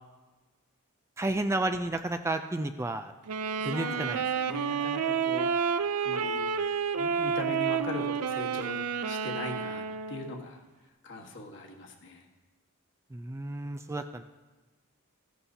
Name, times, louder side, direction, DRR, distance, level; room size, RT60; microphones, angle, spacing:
voice 1, 1.2-3.1 3.6-4.2 13.1-14.2, right 2 dB, 10° right, 7 dB, 0.4 m, -31 dB
Wind instrument woodwind instrument, 3.3-10.4, right 6 dB, 90° right, 0.5 m, -30 dB
voice 2, 3.7-5.5 6.0-10.6 11.0-12.3, left 2 dB, 55° left, 0 dB, 1.5 m, -40 dB
14.5 x 11.5 x 2.8 m, 1.2 s
head